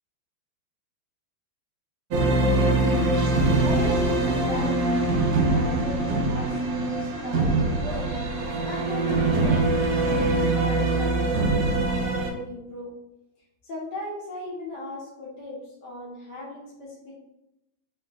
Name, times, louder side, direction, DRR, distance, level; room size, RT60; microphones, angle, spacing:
sound 1, 2.1-12.3, right 2 dB, 65° right, 0.8 m, -23 dB
voice 1, 3.6-5.0 5.5-8.1 8.6-13.0 13.6-17.2, left 1 dB, 60° left, -4 dB, 1.7 m, -37 dB
4.3 x 3.9 x 2.5 m, 0.88 s
omnidirectional pair, 2.2 m